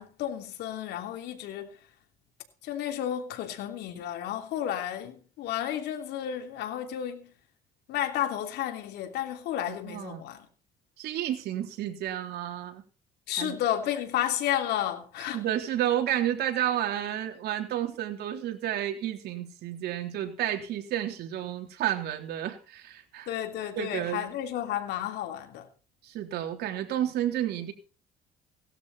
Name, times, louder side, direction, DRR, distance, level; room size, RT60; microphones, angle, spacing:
voice 1, 0.0-1.8 2.6-7.3 7.9-10.5 13.3-15.4 23.3-25.7, left 11 dB, 80° left, 3.2 m, -32 dB
voice 2, 9.7-10.2 11.0-12.8 13.4-13.6 15.3-23.3 23.8-24.3 26.0-27.7, right 11 dB, 70° right, 3.6 m, -31 dB
17.5 x 13.0 x 4.2 m
cardioid pair, 110°, 17 cm